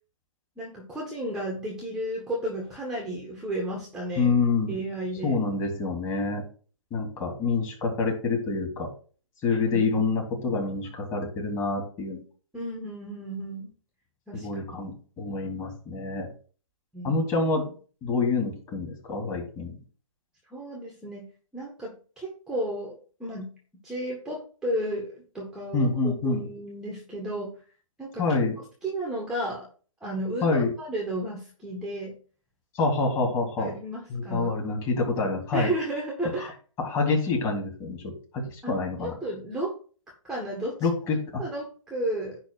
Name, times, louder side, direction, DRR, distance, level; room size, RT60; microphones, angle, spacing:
voice 1, 0.6-4.3 4.7-5.4 9.5-10.1 12.5-13.7 14.3-15.0 16.9-17.2 20.5-23.5 23.8-27.5 28.0-28.3 28.8-29.7 30.0-32.2 33.6-34.5 35.5-36.5 38.6-38.8 39.2-39.7 40.3-40.9 41.4-42.4, right 1 dB, 5° right, -2 dB, 1.8 m, -33 dB
voice 2, 4.2-4.7 5.2-6.4 6.9-8.9 9.4-12.2 14.3-16.3 17.0-17.6 18.0-19.7 25.7-26.5 28.2-28.5 30.4-30.7 32.7-33.7 34.1-35.7 36.8-38.0 38.3-39.1 40.8-41.4, left 3 dB, 20° left, 0 dB, 3.4 m, -27 dB
10.5 x 3.5 x 6.6 m, 0.40 s
hypercardioid pair, 140°, 17 cm